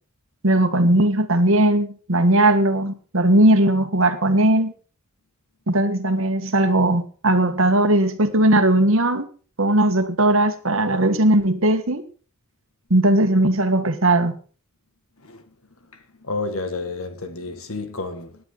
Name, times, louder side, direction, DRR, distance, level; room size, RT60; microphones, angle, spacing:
voice 1, 0.4-4.7 5.7-9.3 9.6-12.0 12.9-14.3, right 1 dB, 65° right, 1.6 m, -18 dB
voice 2, 16.2-18.4, left 3 dB, 70° left, 2.1 m, -30 dB
18.0 x 10.5 x 4.0 m
head